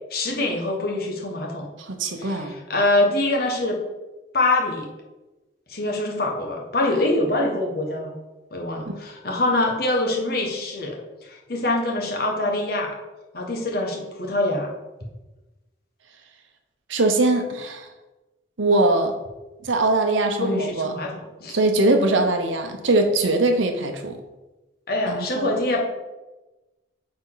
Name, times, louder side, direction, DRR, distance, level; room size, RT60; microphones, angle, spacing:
voice 1, 0.1-1.7 2.2-3.8 4.3-4.9 5.7-8.1 8.5-11.0 11.3-12.9 13.3-14.7 20.4-21.6 24.9-25.8, left 2 dB, 50° left, 0 dB, 1.3 m, -24 dB
voice 2, 1.8-2.5 8.9-9.0 16.9-17.9 18.6-19.1 19.6-20.9 21.5-24.2 25.1-25.5, right 2 dB, 85° right, 5 dB, 0.9 m, -21 dB
8.8 x 4.3 x 4.0 m, 1.1 s
head